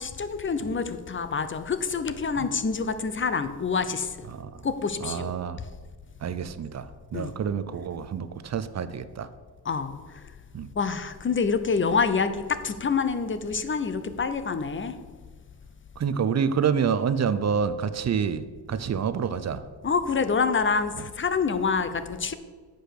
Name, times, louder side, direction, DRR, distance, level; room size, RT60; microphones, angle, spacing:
voice 1, 0.0-4.1 4.6-5.3 7.1-7.3 9.7-9.9 10.8-14.9 19.8-22.3, left 5 dB, 30° left, 11 dB, 0.6 m, -27 dB
voice 2, 4.3-4.6 5.0-5.6 6.2-9.3 10.5-10.7 16.0-18.4 18.7-19.6 20.9-21.1, right 7 dB, 40° right, 12 dB, 0.5 m, -28 dB
7.9 x 5.0 x 6.5 m, 1.5 s
cardioid pair, 100°, 41 cm